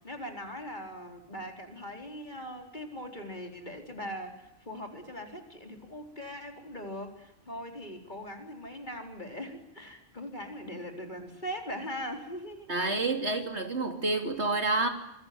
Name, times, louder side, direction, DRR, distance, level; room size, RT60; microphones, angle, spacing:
voice 1, 0.0-12.7, equal, 40° left, 4 dB, 4.5 m, -40 dB
voice 2, 12.7-14.9, right 3 dB, 65° right, 6 dB, 3.4 m, -28 dB
26.5 x 22.5 x 9.5 m, 0.80 s
omnidirectional pair, 1.2 m